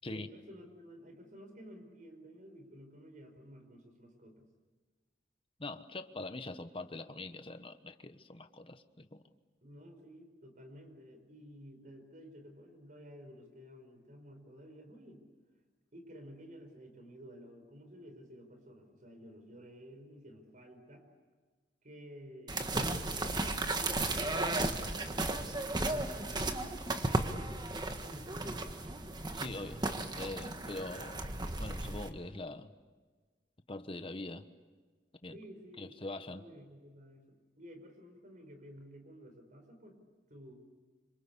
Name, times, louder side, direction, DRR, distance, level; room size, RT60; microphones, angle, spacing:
voice 1, 0.0-4.5 9.6-15.2 15.9-21.0 21.8-27.2 28.0-28.8 35.3-35.9 36.3-40.0 40.3-40.5, equal, 50° right, 6 dB, 5.1 m, -53 dB
voice 2, 5.6-9.2 29.3-29.8 30.1-32.7 33.7-34.5 35.2-35.4 35.8-36.4, left 2 dB, 30° left, 9 dB, 1.2 m, -43 dB
sound 1, 22.5-32.1, right 2 dB, 25° right, 1.5 m, -35 dB
27.5 x 26.0 x 8.3 m, 1.4 s
head